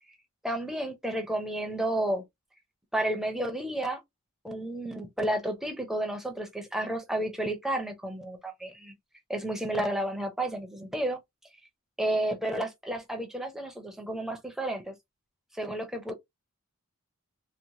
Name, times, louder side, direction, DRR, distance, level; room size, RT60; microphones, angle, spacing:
voice 1, 0.4-2.2 2.9-4.0 4.4-8.9 9.3-11.2 12.0-14.9 15.6-16.1, right 1 dB, ahead, 0.6 m, -31 dB
3.0 x 2.1 x 2.6 m
head